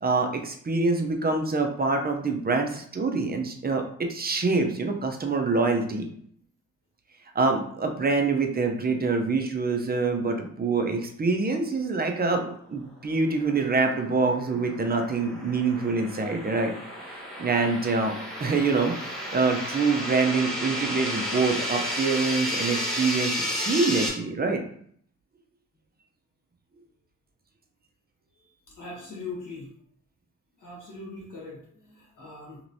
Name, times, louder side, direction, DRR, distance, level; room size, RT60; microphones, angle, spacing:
voice 1, 0.0-6.1 7.3-16.7 17.4-24.6, right 3 dB, 30° right, 4 dB, 0.5 m, -25 dB
sound 1, 13.7-24.1, equal, ahead, 0.9 m, -32 dB
voice 2, 28.4-29.7 30.6-32.6, left 3 dB, 75° left, -3 dB, 1.4 m, -41 dB
3.0 x 2.9 x 2.6 m, 0.63 s
cardioid pair, 90°, 32 cm